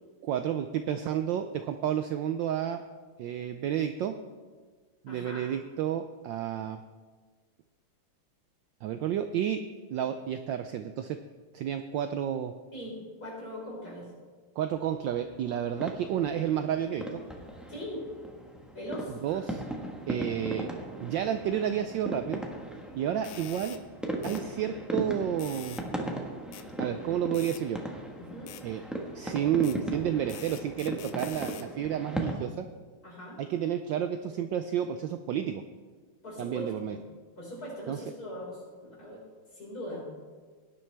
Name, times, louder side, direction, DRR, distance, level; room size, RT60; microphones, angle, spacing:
voice 1, 0.2-2.8 3.2-4.1 5.0-6.8 8.8-9.6 9.9-11.2 11.5-12.5 14.6-17.2 19.2-19.6 20.1-20.7 21.0-22.4 22.9-23.8 24.2-25.8 26.8-27.8 28.6-28.8 29.1-32.7 33.4-35.6 36.4-37.0 37.9-38.0, right 9 dB, 75° right, 8 dB, 1.1 m, -31 dB
voice 2, 5.1-5.4 12.7-14.1 17.7-18.0 18.7-19.4 28.2-28.6 33.0-33.4 36.2-37.0 37.4-39.2 39.5-40.0, equal, 40° left, -6 dB, 5.3 m, -41 dB
sound 1, 14.7-18.7, equal, 25° left, 3.5 m, -60 dB
sound 2, 15.7-32.4, right 1 dB, ahead, 0.8 m, -38 dB
sound 3, 23.2-23.8 24.2-24.4 25.4-25.9 26.5-26.7 27.3-27.6 28.5-28.6 29.6-29.8 30.3-31.7, left 11 dB, 85° left, 1.6 m, -46 dB
18.0 x 10.5 x 3.4 m, 1.4 s
omnidirectional pair, 2.4 m